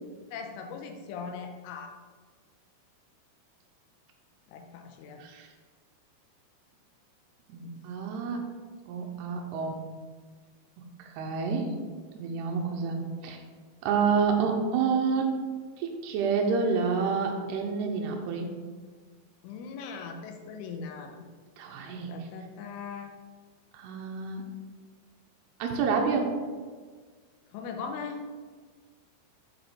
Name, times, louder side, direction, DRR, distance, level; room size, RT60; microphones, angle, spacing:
voice 1, 0.3-1.9 4.5-5.2 19.4-21.3 21.9-23.1 27.5-28.2, left 5 dB, 90° left, 4 dB, 3.2 m, -39 dB
voice 2, 7.5-8.4 8.9-9.8 11.0-11.8 12.2-13.4 13.8-15.4 15.8-18.5 21.6-22.1 23.7-24.4 25.6-26.4, right 5 dB, 80° right, 1 dB, 2.4 m, -28 dB
7.6 x 5.1 x 4.8 m, 1.5 s
omnidirectional pair, 5.5 m